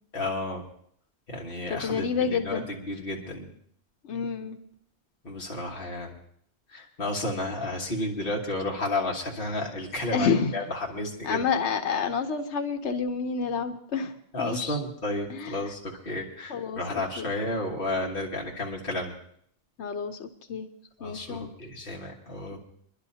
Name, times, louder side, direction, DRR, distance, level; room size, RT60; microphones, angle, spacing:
voice 1, 0.1-0.6 1.3-3.5 5.2-6.1 6.7-11.4 14.3-19.1 21.0-22.6, left 2 dB, 55° left, -2 dB, 1.7 m, -32 dB
voice 2, 1.7-2.7 4.0-4.6 10.1-10.5 11.2-14.1 14.4-14.8 15.3-15.7 16.5-16.8 17.2-17.3 19.8-20.7 21.0-21.5, left 6 dB, 85° left, 6 dB, 1.1 m, -29 dB
24.0 x 11.5 x 2.8 m, 0.65 s
omnidirectional pair, 1.1 m